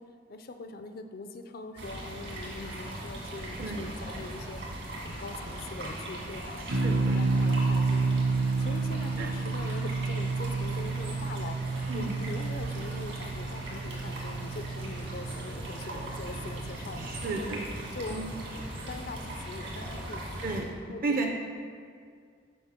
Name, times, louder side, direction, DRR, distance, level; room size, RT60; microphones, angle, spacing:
voice 1, 0.0-4.6 4.9-8.3 8.6-11.6 11.9-17.6 17.9-18.4 18.9-20.4 20.9-21.0, left 2 dB, 50° left, 7 dB, 0.5 m, -42 dB
sound 1, 1.8-20.6, right 1 dB, 75° right, 1.9 m, -39 dB
sound 2, 6.7-17.2, right 3 dB, 90° right, 0.8 m, -30 dB
voice 2, 6.8-7.2 9.2-9.3 11.9-12.2 17.0-17.6 18.1-18.3 20.4-20.6 21.0-21.3, right 3 dB, 50° right, 2 dB, 0.6 m, -32 dB
7.1 x 4.8 x 5.9 m, 2.1 s
head